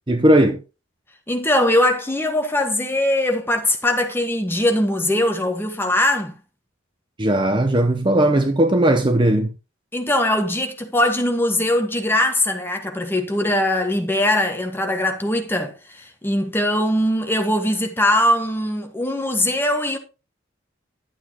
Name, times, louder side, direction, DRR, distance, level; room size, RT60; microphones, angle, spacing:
voice 1, 0.1-0.6 7.2-9.5, right 1 dB, 25° right, 0.7 m, -17 dB
voice 2, 1.3-6.3 9.9-20.0, left 1 dB, 10° left, 1.4 m, -21 dB
11.5 x 7.9 x 2.9 m
head